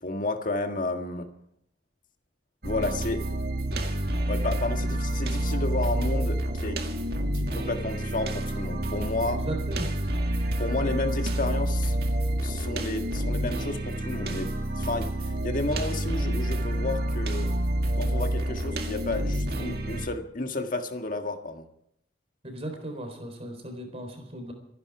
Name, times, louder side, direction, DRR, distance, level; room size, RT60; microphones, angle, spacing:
voice 1, 0.0-1.3 2.6-3.2 4.3-6.8 7.3-9.4 10.6-12.0 12.4-14.5 14.8-17.5 18.0-21.7, left 2 dB, 50° left, 6 dB, 1.7 m, -31 dB
sound 1, 2.6-20.1, right 1 dB, 60° right, 2.1 m, -28 dB
voice 2, 9.2-9.9 22.4-24.5, right 1 dB, 35° right, 5 dB, 4.0 m, -37 dB
26.0 x 11.0 x 4.8 m, 0.73 s
head